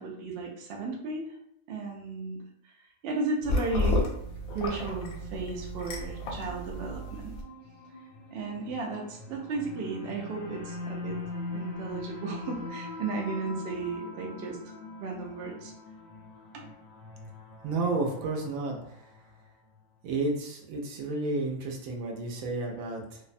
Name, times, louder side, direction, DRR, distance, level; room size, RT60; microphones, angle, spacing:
voice 1, 0.0-1.4 1.7-2.7 3.0-4.1 4.5-7.3 8.3-11.2 11.5-14.7 15.0-15.7, right 3 dB, 65° right, 0 dB, 0.7 m, -34 dB
sound 1, 3.4-7.4, left 2 dB, 80° left, 1.0 m, -32 dB
sound 2, 4.1-19.4, left 2 dB, 30° left, 0.4 m, -43 dB
voice 2, 17.6-18.8 20.0-23.2, right 3 dB, 80° right, 1 dB, 1.0 m, -31 dB
2.6 x 2.0 x 2.5 m, 0.73 s
omnidirectional pair, 1.4 m